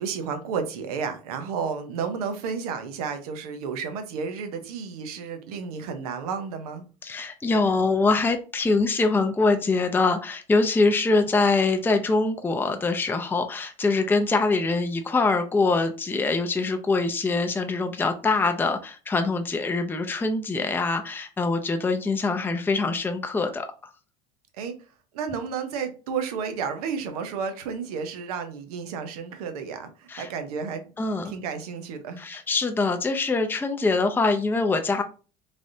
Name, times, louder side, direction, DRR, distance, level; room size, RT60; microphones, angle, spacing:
voice 1, 0.0-6.8 24.6-24.7 25.1-30.8 31.2-32.2, right 6 dB, 90° right, 0.6 m, -32 dB
voice 2, 7.0-23.7 30.1-30.3 31.0-31.3 32.2-35.0, left 3 dB, 10° left, 0.4 m, -24 dB
3.2 x 2.5 x 2.6 m
supercardioid pair, 90°, 19 cm